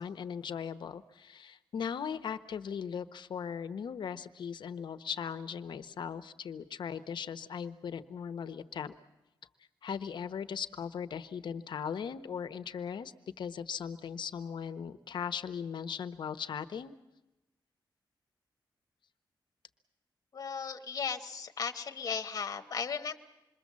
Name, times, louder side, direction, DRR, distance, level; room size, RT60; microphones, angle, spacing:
voice 1, 0.0-8.9 9.8-16.9, left 7 dB, 70° left, 11 dB, 1.0 m, -38 dB
voice 2, 20.3-23.1, left 6 dB, 45° left, 6 dB, 1.2 m, -36 dB
27.0 x 22.0 x 7.5 m, 1.0 s
wide cardioid pair, 170°, 8 cm